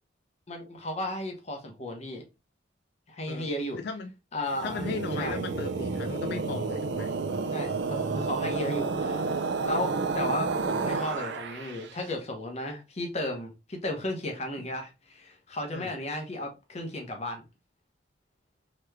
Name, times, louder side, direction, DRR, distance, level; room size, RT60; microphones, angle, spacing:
voice 1, 0.5-2.2 3.1-3.8 4.3-4.8 5.2-5.4 7.5-9.3 9.6-17.4, left 1 dB, 35° left, 0.8 m, -34 dB
voice 2, 3.7-4.1 4.6-7.1 15.7-15.9, left 4 dB, 60° left, 0.3 m, -36 dB
sound 1, 4.5-11.9, right 4 dB, 60° right, 0.4 m, -30 dB
3.2 x 3.0 x 2.2 m
head